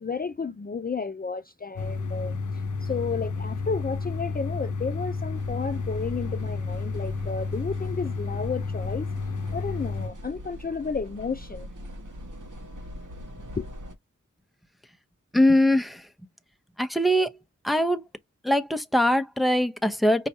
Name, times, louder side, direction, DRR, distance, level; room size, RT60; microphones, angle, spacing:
voice 1, 0.0-2.4 2.8-9.1 9.5-11.7 13.6-13.7, left 5 dB, 30° left, 0.5 m, -32 dB
sound 1, 1.8-10.1, left 4 dB, 70° left, 0.8 m, -31 dB
sound 2, 5.3-13.9, equal, 75° right, 1.9 m, -43 dB
voice 2, 15.3-16.0 16.8-17.3 17.6-18.0 18.4-20.3, left 1 dB, ahead, 0.8 m, -22 dB
5.5 x 3.0 x 2.7 m
wide cardioid pair, 55°, 31 cm